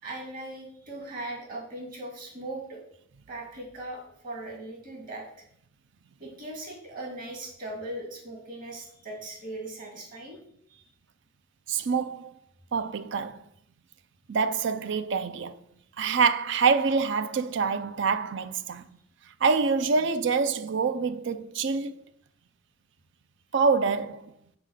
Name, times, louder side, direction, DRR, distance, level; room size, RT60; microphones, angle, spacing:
voice 1, 0.0-2.8 3.3-5.2 6.2-10.4 10.7-10.8, right 1 dB, 45° right, 2.3 m, -39 dB
voice 2, 11.7-12.3 12.7-13.4 14.3-15.6 16.0-18.9 19.4-21.9 23.5-24.3, right 5 dB, 60° right, 0.5 m, -26 dB
6.1 x 4.5 x 6.5 m
head